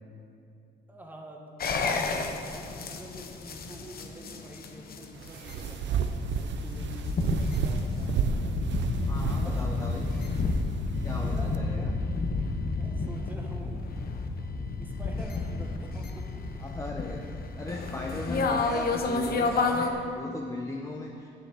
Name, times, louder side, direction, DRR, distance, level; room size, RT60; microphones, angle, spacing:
voice 1, 0.9-1.5 2.0-8.6 9.3-9.8 11.2-11.9 12.8-13.8 14.5-16.4, equal, 10° right, 1 dB, 1.4 m, -46 dB
sound 1, 1.6-19.9, left 3 dB, 50° left, 0.9 m, -31 dB
sound 2, 5.1-11.6, right 6 dB, 65° right, 0.6 m, -32 dB
voice 2, 9.0-10.1 11.0-12.0 16.6-21.5, left 2 dB, 15° left, 0 dB, 0.8 m, -38 dB
7.6 x 6.8 x 8.0 m, 2.4 s
cardioid pair, 90°, 20 cm